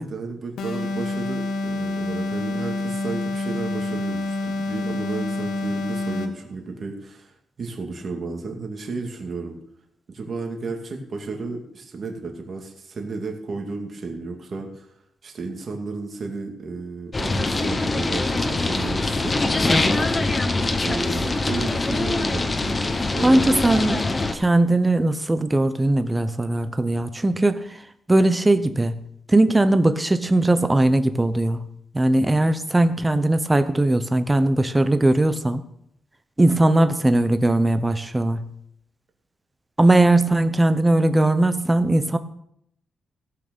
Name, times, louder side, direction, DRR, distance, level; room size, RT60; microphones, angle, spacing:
voice 1, 0.0-9.6 10.1-14.9 15.2-20.4 20.8-23.6, right 3 dB, 45° right, 2 dB, 2.3 m, -33 dB
sound 1, 0.6-6.5, left 2 dB, 85° left, 1.5 m, -27 dB
sound 2, 17.1-24.3, left 2 dB, 25° left, 1.2 m, -23 dB
voice 2, 23.2-24.0 24.3-27.6 28.1-29.0 29.3-31.7 31.9-35.6 36.4-38.5 39.8-42.2, right 2 dB, 15° right, 10 dB, 0.9 m, -19 dB
15.5 x 6.4 x 7.0 m, 0.72 s
cardioid pair, 115°, 0 cm